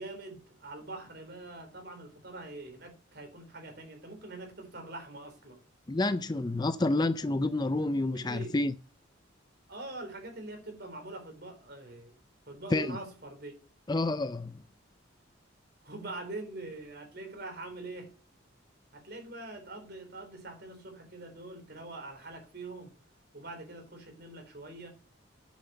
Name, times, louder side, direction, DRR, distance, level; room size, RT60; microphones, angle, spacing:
voice 1, 0.0-5.6 8.1-8.6 9.7-12.2 12.5-13.5 15.8-18.1 18.9-23.0 23.3-24.9, right 2 dB, 50° right, 3.8 m, -44 dB
voice 2, 5.9-8.7 12.7-13.0 13.9-14.5, left 2 dB, 20° left, 0.4 m, -29 dB
9.1 x 7.2 x 6.9 m
head